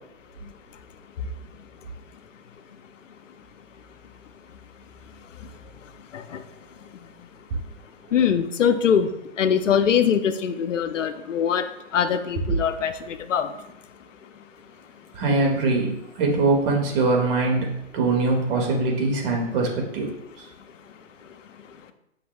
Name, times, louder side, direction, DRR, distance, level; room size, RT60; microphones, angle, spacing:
voice 1, 8.1-9.1 9.4-11.6 11.9-13.5, left 8 dB, 85° left, 9 dB, 0.8 m, -22 dB
voice 2, 15.1-15.9 16.2-20.5, right 3 dB, 50° right, 1 dB, 2.2 m, -22 dB
8.4 x 5.7 x 2.3 m, 0.82 s
hypercardioid pair, 130°, 36 cm